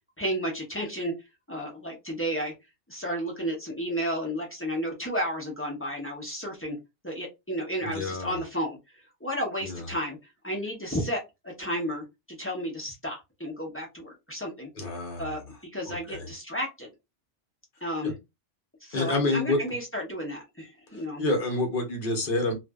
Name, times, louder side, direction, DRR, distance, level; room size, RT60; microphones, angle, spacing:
voice 1, 0.2-1.1 1.5-2.5 2.9-6.8 7.0-8.8 9.2-10.2 10.4-14.7 15.2-16.9 17.8-18.1 18.8-21.2, equal, 15° left, 0.7 m, -32 dB
voice 2, 7.9-8.4 9.6-9.9 14.8-15.2 15.9-16.3 18.0-18.1 18.9-19.6 21.2-22.5, left 2 dB, 50° left, 0.9 m, -28 dB
2.5 x 2.5 x 2.2 m
omnidirectional pair, 1.2 m